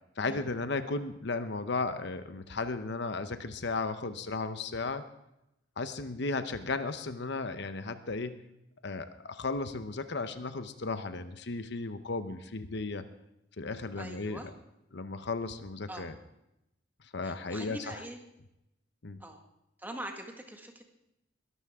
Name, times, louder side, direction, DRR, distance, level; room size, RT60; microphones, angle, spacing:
voice 1, 0.2-5.0 5.8-8.4 8.8-13.1 13.6-14.4 14.9-16.1 17.1-18.0 19.0-19.2, left 3 dB, 65° left, 10 dB, 0.9 m, -35 dB
voice 2, 14.0-14.5 15.9-16.1 17.2-18.2 19.2-19.4 19.8-20.8, right 1 dB, 10° right, 3 dB, 1.8 m, -43 dB
21.5 x 13.0 x 3.7 m, 0.85 s
head